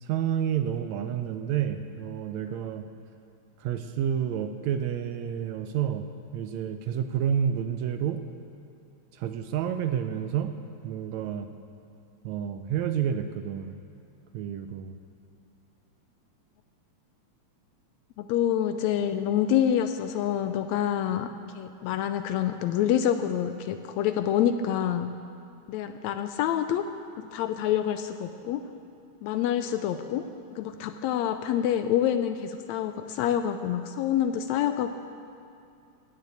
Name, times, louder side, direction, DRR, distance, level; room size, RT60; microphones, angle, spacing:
voice 1, 0.0-2.8 3.6-6.1 6.3-8.2 9.2-10.5 10.8-11.5 12.2-13.8 14.3-15.0, right 9 dB, 80° right, 8 dB, 1.7 m, -29 dB
voice 2, 18.2-25.1 25.7-26.8 27.2-28.6 29.2-30.3 30.5-34.9, left 10 dB, 80° left, 9 dB, 1.7 m, -27 dB
16.5 x 6.7 x 8.4 m, 2.6 s
omnidirectional pair, 3.4 m